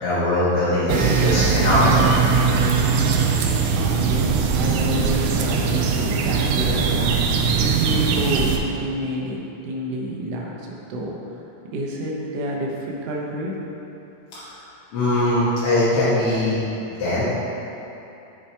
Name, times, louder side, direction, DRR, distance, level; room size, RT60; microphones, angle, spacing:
voice 1, 0.0-2.1 14.3-14.4 14.9-16.6 17.0-17.2, left 1 dB, 60° left, -11 dB, 1.9 m, -20 dB
sound 1, 0.9-8.6, right 5 dB, 80° right, 1.5 m, -20 dB
voice 2, 3.7-7.3 7.6-11.2 11.7-13.6, equal, 65° right, -2 dB, 1.7 m, -29 dB
6.8 x 5.7 x 4.4 m, 2.9 s
omnidirectional pair, 3.6 m